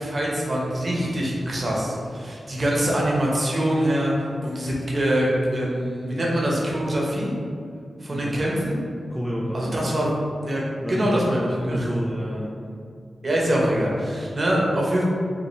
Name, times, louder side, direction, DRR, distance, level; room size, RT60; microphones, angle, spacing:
voice 1, 0.0-4.1 4.4-7.3 8.0-8.8 9.5-10.1 10.4-11.9 13.2-15.0, right 1 dB, 35° right, -4 dB, 0.8 m, -24 dB
voice 2, 9.1-9.9 10.8-11.3 11.6-12.5, equal, 5° right, -5 dB, 0.3 m, -29 dB
5.2 x 2.7 x 3.1 m, 2.3 s
wide cardioid pair, 165°, 0 cm